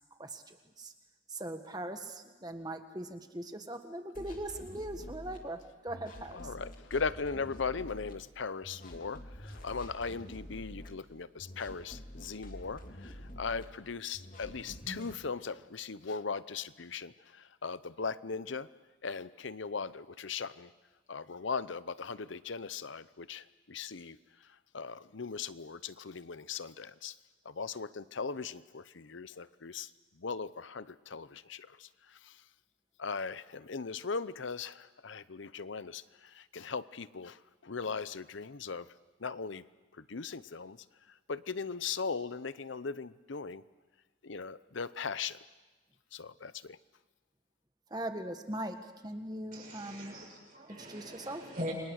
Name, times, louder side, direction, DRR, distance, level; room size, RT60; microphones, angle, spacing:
voice 1, 0.2-0.9 1.3-6.4 47.9-48.8 49.0-50.1 50.7-51.4, right 1 dB, 20° right, 6 dB, 1.7 m, -40 dB
sound 1, 4.1-5.4 5.9-8.1 8.6-10.9 11.4-13.6 14.1-15.2, equal, 45° left, 2.9 m, -47 dB
voice 2, 6.4-9.2 9.6-12.8 13.4-17.1 17.6-18.7 19.0-20.7 21.1-23.4 23.7-24.2 24.7-27.1 27.6-29.9 30.2-30.9 31.1-31.7 33.0-34.7 35.0-36.0 36.5-37.3 37.7-38.9 39.2-39.6 40.1-40.8 41.3-43.6 44.2-45.4 46.1-46.5, left 5 dB, 75° left, 16 dB, 0.8 m, -38 dB
voice 3, 49.5-51.7, equal, 45° right, -2 dB, 7.0 m, -42 dB
29.0 x 25.0 x 6.5 m, 1.2 s
head